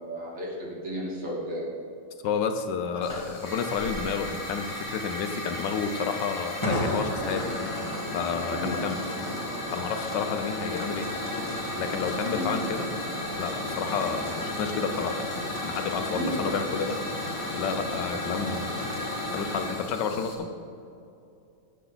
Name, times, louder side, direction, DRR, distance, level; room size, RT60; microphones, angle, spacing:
voice 1, 0.0-1.7 8.5-8.8 12.3-12.6 16.1-16.3, equal, 80° right, -5 dB, 3.3 m, -33 dB
voice 2, 2.2-7.7 8.1-9.0 9.7-11.1 11.7-12.9 13.3-15.3 15.6-17.0 17.5-19.0 19.3-20.5, left 6 dB, 85° left, 7 dB, 1.5 m, -30 dB
Hiss / Fire, 3.0-20.3, left 1 dB, 15° left, 1.9 m, -33 dB
17.0 x 7.8 x 4.0 m, 2.7 s
omnidirectional pair, 1.8 m